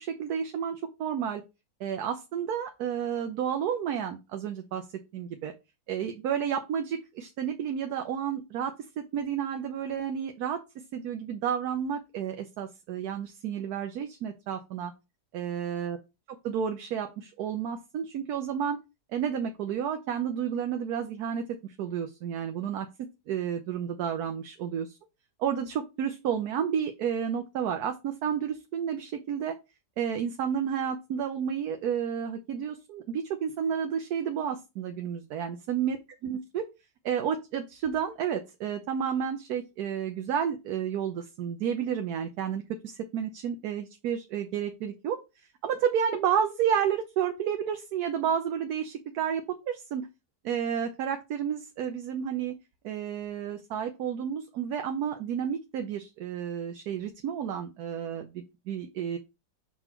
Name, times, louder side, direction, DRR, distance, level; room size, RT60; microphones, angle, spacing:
voice 1, 0.0-1.4 1.8-4.8 5.1-5.5 5.9-10.6 10.9-14.9 15.3-16.0 16.4-18.8 19.1-22.9 23.3-25.0 25.4-29.6 30.0-36.0 36.2-36.6 37.0-50.1 50.4-52.6 52.8-59.2, right 8 dB, 75° right, 6 dB, 1.2 m, -31 dB
5.9 x 3.9 x 4.3 m, 0.25 s
omnidirectional pair, 1.7 m